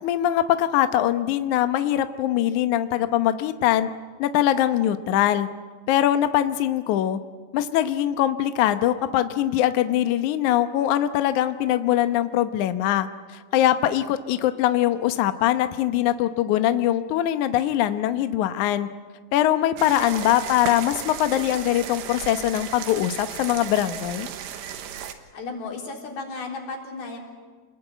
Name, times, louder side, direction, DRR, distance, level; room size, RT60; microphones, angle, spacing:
voice 1, 0.0-3.9 4.2-5.5 5.9-7.2 7.5-18.9 19.3-24.3, left 12 dB, 80° left, 9 dB, 1.7 m, -22 dB
sound 1, 19.8-25.1, right 9 dB, 85° right, 3.5 m, -35 dB
voice 2, 25.3-27.2, left 3 dB, 60° left, 0 dB, 5.6 m, -34 dB
28.0 x 20.5 x 9.1 m, 1.5 s
omnidirectional pair, 4.9 m